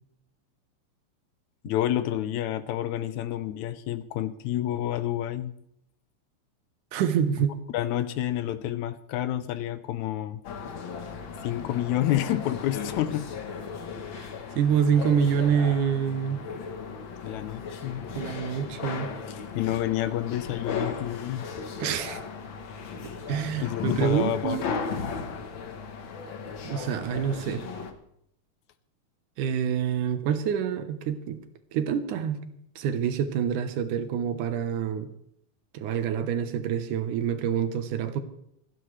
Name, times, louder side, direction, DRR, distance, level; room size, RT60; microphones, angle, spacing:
voice 1, 1.6-5.5 7.7-10.4 11.4-13.3 14.5-14.6 17.2-18.0 19.5-21.5 23.6-24.6, left 12 dB, 80° left, 12 dB, 2.0 m, -29 dB
voice 2, 6.9-7.6 14.1-14.3 14.6-16.4 18.2-19.1 21.8-22.2 23.3-24.7 26.6-27.7 29.4-31.4 31.7-35.1 35.7-38.2, right 8 dB, 85° right, 9 dB, 2.5 m, -27 dB
sound 1, 10.4-27.9, left 5 dB, 55° left, 1.4 m, -36 dB
27.5 x 9.9 x 3.2 m, 0.75 s
omnidirectional pair, 3.5 m